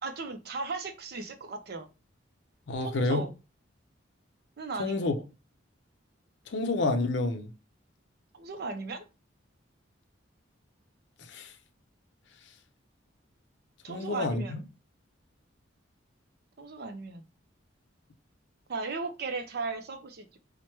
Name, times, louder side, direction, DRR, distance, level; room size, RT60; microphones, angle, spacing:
voice 1, 0.0-1.9 2.8-3.3 4.6-5.1 8.3-9.0 13.8-14.6 16.6-17.2 18.7-20.4, right 3 dB, 55° right, 0.5 m, -36 dB
voice 2, 2.7-3.2 4.8-5.2 6.5-7.5 11.3-11.5 13.9-14.6, left 2 dB, 60° left, 0.5 m, -29 dB
4.5 x 2.1 x 3.0 m
head